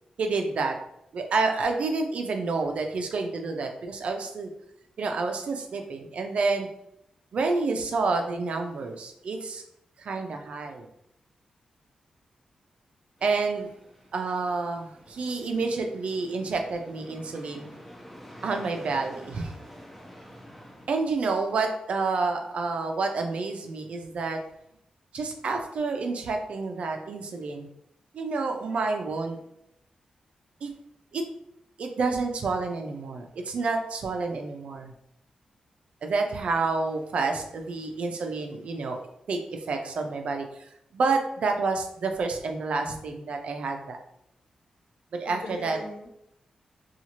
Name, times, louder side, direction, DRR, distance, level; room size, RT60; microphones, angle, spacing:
voice 1, 0.2-0.8 1.1-4.5 5.0-6.7 7.3-9.6 10.0-10.9 13.2-13.7 14.1-17.7 18.4-19.5 20.9-24.4 25.1-27.7 28.1-29.4 30.6-30.7 31.1-31.2 31.8-34.9 36.0-44.0 45.1-45.8, right 3 dB, 70° right, 4 dB, 0.4 m, -29 dB
sound 1, 13.2-20.9, equal, 5° left, 0.6 m, -48 dB
voice 2, 37.5-38.0 45.3-46.1, left 2 dB, 60° left, -1 dB, 0.8 m, -41 dB
2.7 x 2.3 x 2.9 m, 0.79 s
wide cardioid pair, 105°, 2 cm